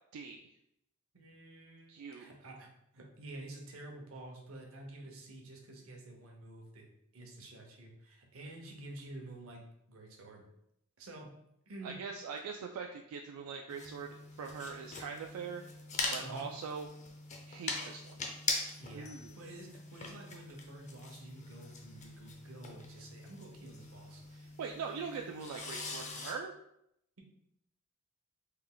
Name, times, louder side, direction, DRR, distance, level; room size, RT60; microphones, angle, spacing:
voice 1, 0.1-0.5 1.9-2.3 11.8-15.6 16.1-16.9 17.5-18.2 18.9-19.3 24.3-26.5, right 5 dB, 85° right, 3 dB, 0.3 m, -42 dB
voice 2, 1.1-2.7 2.9-6.8 7.1-10.4 11.0-11.3 11.7-12.0 16.2-16.5 18.8-24.2, right 2 dB, 65° right, 0 dB, 0.7 m, -49 dB
sound 1, 13.7-26.3, left 3 dB, 35° left, 0.4 m, -42 dB
3.3 x 2.2 x 3.8 m, 0.78 s
head